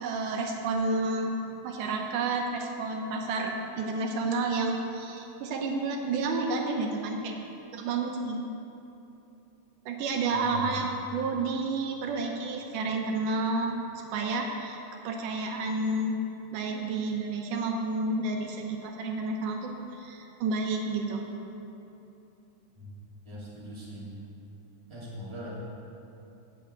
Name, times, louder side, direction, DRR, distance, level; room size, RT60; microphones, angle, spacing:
voice 1, 0.0-1.3 1.6-7.3 7.7-8.4 9.9-13.8 14.1-14.8 15.0-16.2 16.5-21.3, right 3 dB, 85° right, 2 dB, 2.4 m, -30 dB
voice 2, 10.3-10.8 22.8-22.9 23.2-24.1 24.9-25.5, left 1 dB, 10° right, -8 dB, 2.2 m, -41 dB
8.5 x 7.0 x 8.3 m, 2.8 s
omnidirectional pair, 3.6 m